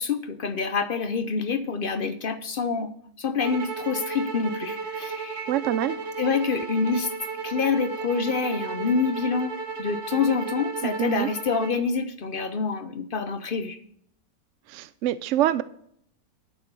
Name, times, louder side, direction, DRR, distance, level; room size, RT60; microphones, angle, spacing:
voice 1, 0.0-2.9 3.2-5.5 6.2-7.1 7.4-13.8, left 5 dB, 55° left, 11 dB, 0.6 m, -27 dB
sound 1, 3.4-11.8, right 4 dB, 50° right, 1.5 m, -34 dB
voice 2, 5.5-6.0 10.8-11.3 14.7-15.6, right 12 dB, 70° right, 15 dB, 0.7 m, -25 dB
12.5 x 7.1 x 5.3 m, 0.68 s
omnidirectional pair, 1.7 m